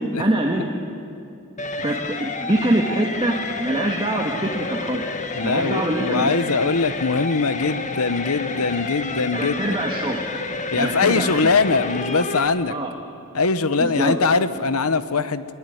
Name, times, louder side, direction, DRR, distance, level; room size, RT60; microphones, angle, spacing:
voice 1, 0.2-0.7 1.8-5.0 5.4-6.4 9.3-10.2 10.8-11.4 12.7-12.9 13.8-14.1, right 1 dB, 25° right, 0 dB, 1.7 m, -24 dB
sound 1, 1.6-12.5, left 3 dB, 35° left, 1.6 m, -30 dB
voice 2, 5.3-9.8 10.7-12.8 13.3-15.5, left 4 dB, 90° left, 13 dB, 1.1 m, -21 dB
21.0 x 19.5 x 9.4 m, 2.7 s
head